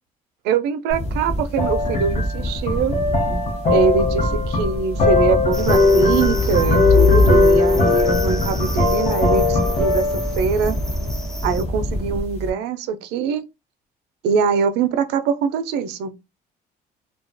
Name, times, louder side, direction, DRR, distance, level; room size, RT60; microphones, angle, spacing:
voice 1, 0.4-3.0 3.7-10.8 11.4-13.4 14.2-16.1, right 6 dB, 85° right, 0.5 m, -23 dB
sound 1, 0.9-12.5, left 2 dB, 40° left, 0.8 m, -20 dB
sound 2, 5.5-11.6, left 4 dB, 5° left, 0.4 m, -24 dB
2.3 x 2.3 x 2.5 m
cardioid pair, 110°, 17 cm